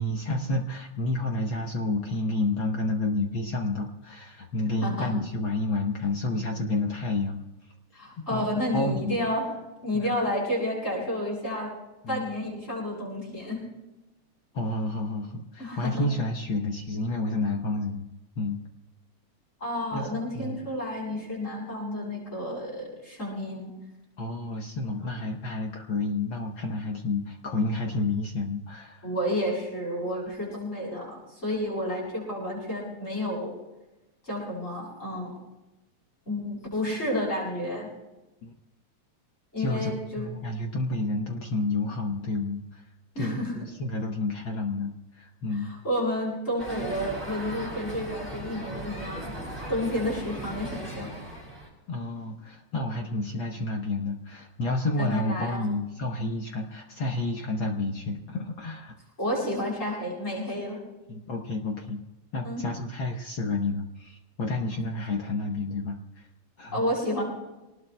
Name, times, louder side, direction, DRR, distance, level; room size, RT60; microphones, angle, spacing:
voice 1, 0.0-7.4 8.3-8.5 8.7-9.2 9.9-10.1 12.0-12.2 14.5-18.0 18.4-18.6 19.9-20.6 24.2-29.1 38.4-38.5 39.6-42.8 43.2-45.7 51.9-58.9 61.1-62.0 62.3-66.3 66.6-66.8, left 2 dB, 65° left, 2 dB, 1.3 m, -30 dB
voice 2, 4.8-5.2 7.9-9.5 9.8-11.7 12.1-13.6 15.6-16.1 19.6-23.7 29.0-33.5 34.2-35.3 36.3-37.9 39.5-40.3 43.1-43.5 45.5-49.4 49.7-51.1 55.0-55.7 59.2-60.8 62.4-62.6 66.7-67.2, left 1 dB, 25° left, -5 dB, 7.4 m, -30 dB
sound 1, 46.6-51.7, right 1 dB, 5° right, 6.7 m, -38 dB
27.0 x 19.5 x 2.2 m, 1.0 s
omnidirectional pair, 3.4 m